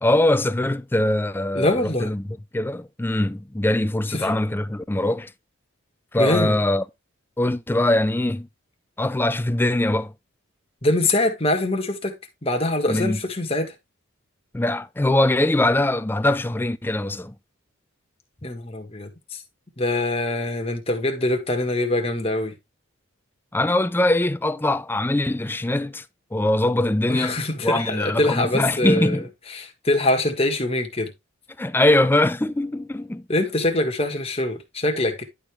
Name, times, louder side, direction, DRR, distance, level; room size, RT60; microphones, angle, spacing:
voice 1, 0.0-2.2 2.5-5.3 6.1-6.8 7.4-8.5 9.0-10.1 12.9-13.2 14.5-17.3 23.5-26.0 26.3-27.4 27.6-29.3 31.6-33.2, left 1 dB, 10° left, 0.4 m, -22 dB
voice 2, 1.5-2.1 4.1-4.4 6.2-6.6 10.8-12.1 12.4-13.7 18.4-19.4 19.8-22.5 27.1-29.2 29.5-31.1 33.3-35.2, left 1 dB, 30° left, 1.7 m, -24 dB
11.0 x 4.8 x 3.4 m
head